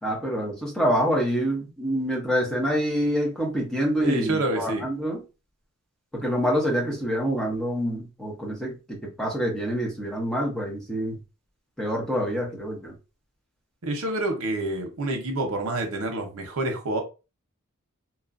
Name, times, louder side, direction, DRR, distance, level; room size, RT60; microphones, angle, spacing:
voice 1, 0.0-5.2 6.1-11.2 11.8-12.9, equal, 5° left, 0.8 m, -26 dB
voice 2, 4.0-4.8 13.8-17.0, right 2 dB, 80° right, 0.8 m, -27 dB
2.9 x 2.4 x 2.5 m
head